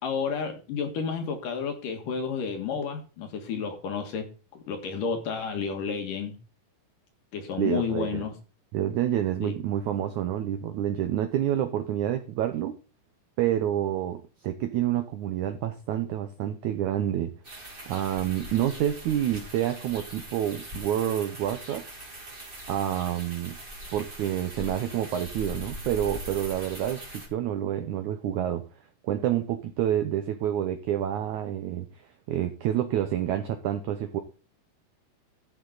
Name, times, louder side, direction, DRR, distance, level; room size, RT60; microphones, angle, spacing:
voice 1, 0.0-4.3 4.5-6.4 7.3-8.3 9.4-9.5, left 6 dB, 65° left, 5 dB, 2.9 m, -31 dB
voice 2, 7.6-8.2 8.7-12.8 13.4-17.3 17.9-21.8 22.7-23.6 23.9-28.6 29.0-31.9 32.3-34.2, right 11 dB, 85° right, 8 dB, 1.7 m, -28 dB
sound 1, 17.4-27.3, equal, 20° right, 1.7 m, -41 dB
13.0 x 7.8 x 3.9 m, 0.34 s
omnidirectional pair, 4.6 m